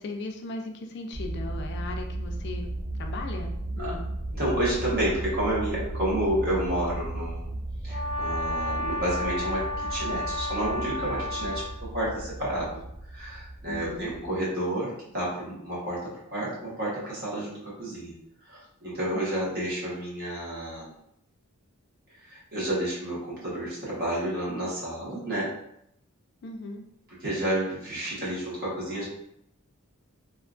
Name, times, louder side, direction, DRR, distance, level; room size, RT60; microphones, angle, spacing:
voice 1, 0.0-2.7 3.0-4.1 13.7-14.1 19.1-19.4 26.4-26.8, left 2 dB, 50° left, 3 dB, 0.3 m, -37 dB
sound 1, 1.1-14.3, right 1 dB, 75° right, 0.6 m, -35 dB
voice 2, 4.3-7.5 7.8-11.6 11.9-12.8 13.1-16.0 16.3-18.1 18.5-20.9 22.3-25.5 27.2-29.1, right 1 dB, 45° right, -7 dB, 1.3 m, -30 dB
Brass instrument, 7.9-11.8, left 1 dB, 25° right, 1.0 m, -32 dB
2.9 x 2.2 x 2.5 m, 0.76 s
head